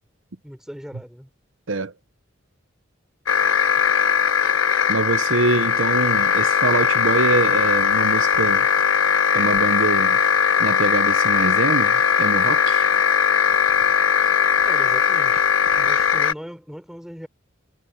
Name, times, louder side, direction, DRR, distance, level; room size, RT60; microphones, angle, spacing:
voice 1, 0.4-1.3 14.6-15.5 15.8-17.3, equal, 5° right, 4.0 m, -38 dB
sound 1, 3.3-16.3, left 7 dB, 85° left, 1.2 m, -19 dB
voice 2, 4.9-8.7 9.3-10.2 10.6-12.9, right 3 dB, 75° right, 0.9 m, -24 dB
head